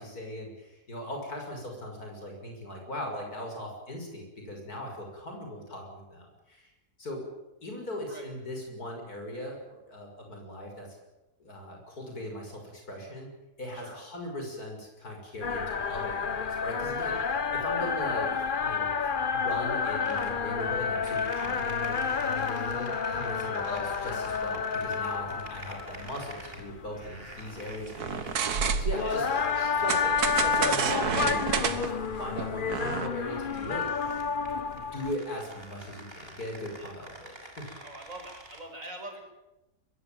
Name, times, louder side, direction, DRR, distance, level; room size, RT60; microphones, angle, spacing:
voice 1, 0.0-6.7 7.0-7.2 7.6-11.0 11.4-13.3 13.6-18.9 19.2-28.5 28.8-29.3 29.8-33.9 34.4-37.7, left 1 dB, 75° left, 2 dB, 6.8 m, -39 dB
sound 1, 15.4-35.1, left 6 dB, 40° left, 1.0 m, -30 dB
sound 2, 20.0-38.6, right 1 dB, 35° right, 4.2 m, -49 dB
sound 3, 27.9-29.2 29.9-33.1, right 6 dB, 80° right, 1.9 m, -29 dB
voice 2, 29.0-29.8 30.9-31.1 36.8-37.0 37.8-39.2, right 1 dB, 55° right, 4 dB, 5.8 m, -44 dB
23.5 x 21.0 x 8.9 m, 0.98 s
omnidirectional pair, 1.6 m